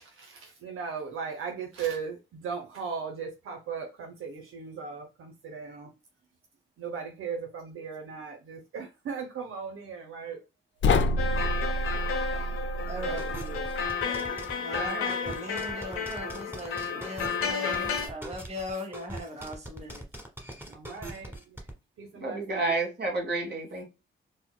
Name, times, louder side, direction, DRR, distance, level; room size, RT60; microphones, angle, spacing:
voice 1, 0.0-5.9 6.8-10.4 12.9-13.2 14.7-15.0 20.6-21.6 22.0-22.7, right 6 dB, 80° right, 0.7 m, -37 dB
sound 1, 10.8-13.9, left 2 dB, 60° left, 0.5 m, -28 dB
sound 2, 11.2-18.1, left 6 dB, 80° left, 1.0 m, -32 dB
voice 2, 11.8-12.5 12.9-13.7 14.6-20.1, left 1 dB, 30° right, 1.0 m, -39 dB
sound 3, 13.2-21.7, right 1 dB, 10° right, 1.3 m, -41 dB
voice 3, 22.2-23.8, right 3 dB, 50° right, 1.7 m, -30 dB
4.2 x 2.1 x 2.3 m
cardioid pair, 55°, 21 cm